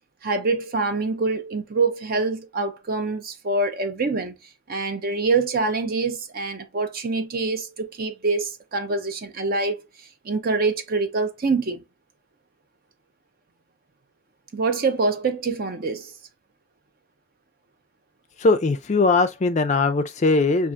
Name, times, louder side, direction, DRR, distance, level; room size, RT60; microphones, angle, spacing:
voice 1, 0.2-4.3 4.7-9.8 10.2-11.8 14.5-16.1, right 3 dB, 45° right, 0.5 m, -25 dB
voice 2, 18.4-20.7, left 3 dB, 35° left, 0.4 m, -20 dB
4.6 x 2.4 x 2.5 m
head